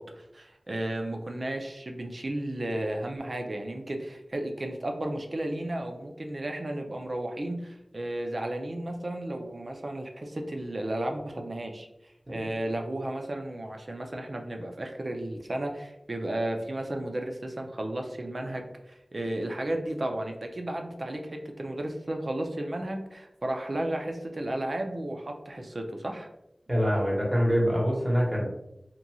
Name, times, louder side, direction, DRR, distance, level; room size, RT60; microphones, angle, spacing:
voice 1, 0.0-11.9 12.3-26.3, right 1 dB, 60° right, 3 dB, 0.4 m, -33 dB
voice 2, 26.7-28.5, equal, 25° right, -3 dB, 1.0 m, -25 dB
3.0 x 2.5 x 2.3 m, 0.86 s
wide cardioid pair, 45°, 0 cm